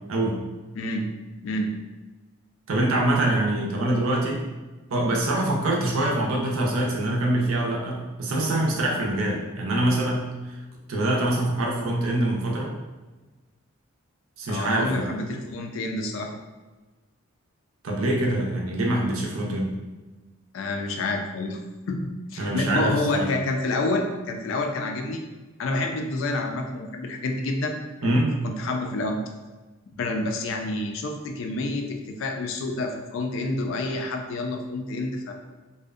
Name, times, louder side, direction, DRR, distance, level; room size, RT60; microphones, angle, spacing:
voice 1, 0.8-1.1 1.4-1.7 14.5-16.3 20.5-21.6 21.9-22.0 22.3-25.2 25.6-27.7 28.0-29.2 30.0-35.3, left 2 dB, 65° left, 3 dB, 0.3 m, -28 dB
voice 2, 2.7-4.4 4.9-10.5 10.9-12.7 14.4-15.1 17.8-19.7 22.4-23.3 28.0-28.3, right 1 dB, 75° right, -2 dB, 0.5 m, -24 dB
2.6 x 2.0 x 2.4 m, 1.2 s
head